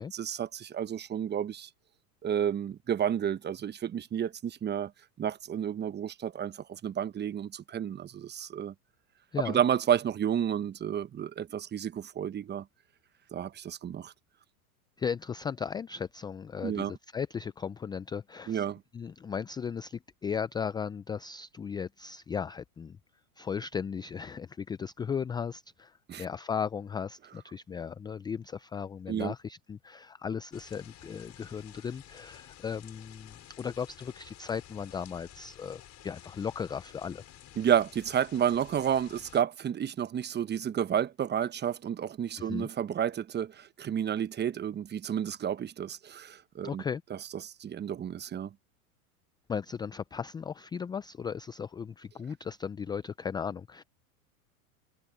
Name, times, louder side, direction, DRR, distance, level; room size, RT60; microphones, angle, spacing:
voice 1, 0.0-1.7 2.2-4.9 5.2-8.7 9.4-12.6 13.3-14.1 16.6-16.9 18.5-18.8 26.1-26.2 29.1-29.3 37.6-46.8 47.1-48.5, right 9 dB, 20° right, 1.1 m, -31 dB
voice 2, 15.0-18.6 18.9-23.0 23.4-37.2 42.4-42.7 46.6-47.0 49.5-53.8, left 7 dB, 10° left, 0.4 m, -36 dB
sound 1, 30.5-39.4, left 12 dB, 35° left, 5.6 m, -52 dB
hypercardioid pair, 100°, 45 cm